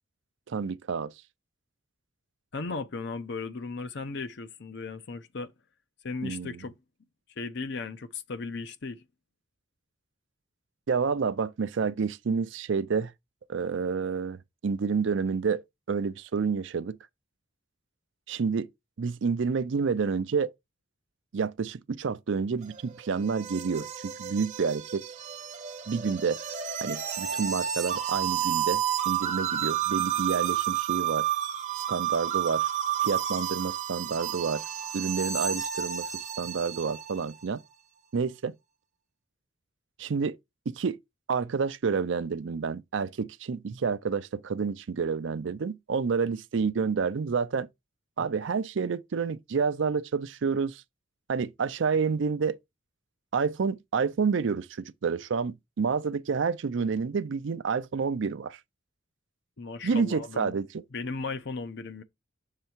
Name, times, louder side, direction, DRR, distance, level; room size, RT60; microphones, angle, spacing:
voice 1, 0.5-1.1 6.2-6.6 10.9-13.1 13.5-14.4 14.6-15.6 15.9-17.0 18.3-18.7 19.0-20.5 21.3-25.0 25.9-26.4 26.8-31.3 31.9-32.7 33.0-34.6 34.9-36.1 36.4-37.6 38.1-38.5 40.0-40.4 40.7-41.0 41.3-47.7 48.2-50.8 51.3-52.6 53.3-58.6 59.8-60.8, right 5 dB, 65° right, 0.5 m, -29 dB
voice 2, 2.5-5.5 6.0-6.8 7.4-9.0 59.6-60.6 60.9-62.0, left 4 dB, 60° left, 0.7 m, -36 dB
sound 1, 22.6-37.2, right 10 dB, 40° right, 0.8 m, -31 dB
6.7 x 3.4 x 4.4 m
head